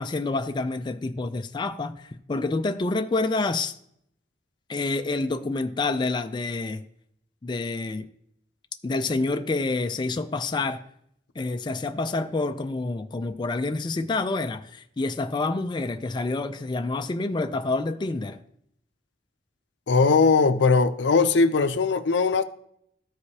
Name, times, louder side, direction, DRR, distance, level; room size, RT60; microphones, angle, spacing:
voice 1, 0.0-3.7 4.7-6.8 7.4-8.1 8.8-10.8 11.4-18.4, left 3 dB, 25° left, 0.4 m, -28 dB
voice 2, 19.9-22.4, left 4 dB, 80° left, 0.5 m, -20 dB
13.5 x 4.9 x 2.8 m
head